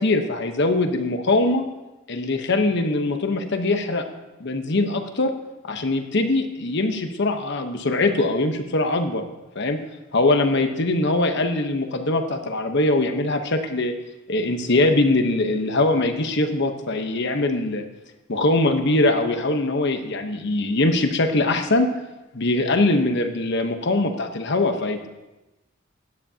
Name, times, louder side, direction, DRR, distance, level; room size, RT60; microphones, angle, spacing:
voice 1, 0.0-1.6 2.1-4.0 4.4-5.3 5.6-9.2 9.5-9.8 10.1-13.9 14.3-17.8 18.3-21.9 22.3-25.1, left 2 dB, 60° left, 6 dB, 1.0 m, -22 dB
16.0 x 9.8 x 2.8 m, 1.1 s
head